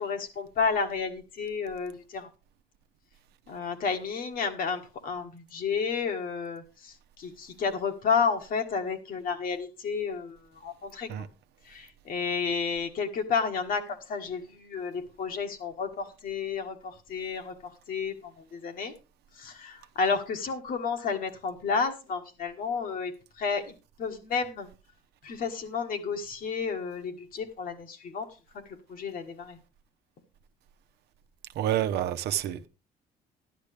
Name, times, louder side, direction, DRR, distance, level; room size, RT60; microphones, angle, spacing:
voice 1, 0.0-2.3 3.5-11.1 11.6-18.9 19.3-24.7 25.2-29.6, left 5 dB, 55° left, 1.8 m, -31 dB
voice 2, 31.5-32.7, right 11 dB, 75° right, 1.0 m, -28 dB
12.0 x 11.0 x 3.4 m
cardioid pair, 110°, 17 cm